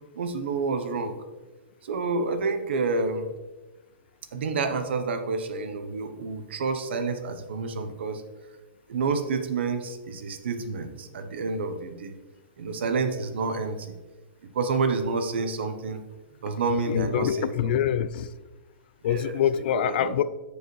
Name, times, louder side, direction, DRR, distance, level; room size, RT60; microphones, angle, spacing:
voice 1, 0.1-1.2 1.8-3.3 4.3-8.2 8.9-12.1 12.6-13.9 14.5-16.0 16.4-17.8 19.0-19.4 19.7-20.2, right 4 dB, 70° right, 7 dB, 0.9 m, -29 dB
voice 2, 16.9-18.3 19.0-20.2, left 10 dB, 55° left, 15 dB, 0.3 m, -25 dB
8.9 x 4.9 x 3.1 m, 1.2 s
hypercardioid pair, 140°, 6 cm